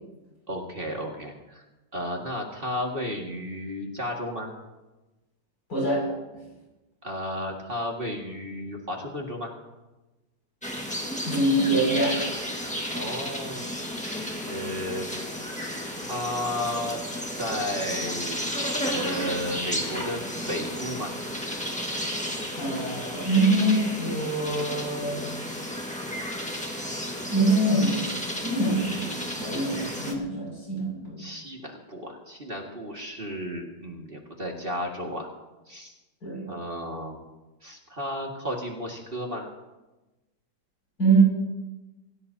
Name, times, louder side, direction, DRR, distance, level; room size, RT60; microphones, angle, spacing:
voice 1, 0.5-1.6 1.9-4.5 7.0-9.5 12.9-13.7 14.0-15.1 15.6-17.0 17.3-18.5 18.9-20.2 20.5-21.2 31.2-35.3 35.7-35.9 36.5-37.2 37.6-39.5, left 1 dB, 30° right, 0 dB, 2.2 m, -33 dB
voice 2, 5.7-6.1 11.3-12.3 22.5-25.2 27.3-28.1 28.4-29.1 29.4-31.2 36.2-36.4 41.0-41.2, right 2 dB, 55° left, -3 dB, 7.1 m, -24 dB
sound 1, 10.6-30.1, equal, 5° left, 1.5 m, -33 dB
25.0 x 16.5 x 2.9 m, 1.1 s
omnidirectional pair, 2.0 m